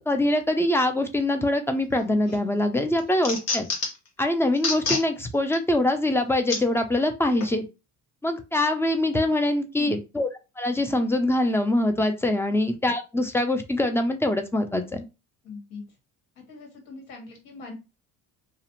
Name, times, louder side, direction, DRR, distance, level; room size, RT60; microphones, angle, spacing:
voice 1, 0.0-3.7 4.2-7.6 8.2-10.3 10.6-15.0, left 1 dB, 5° left, 6 dB, 0.3 m, -24 dB
sound 1, 2.0-2.4 2.8-4.1 4.5-5.1 5.5-5.6 6.5-6.6 7.4-7.5, left 4 dB, 45° left, 1.0 m, -28 dB
voice 2, 9.7-10.0 12.4-12.5 15.4-15.8 16.4-17.7, left 4 dB, 75° left, 2 dB, 1.3 m, -40 dB
2.4 x 2.0 x 2.8 m, 0.27 s
supercardioid pair, 90°, 37 cm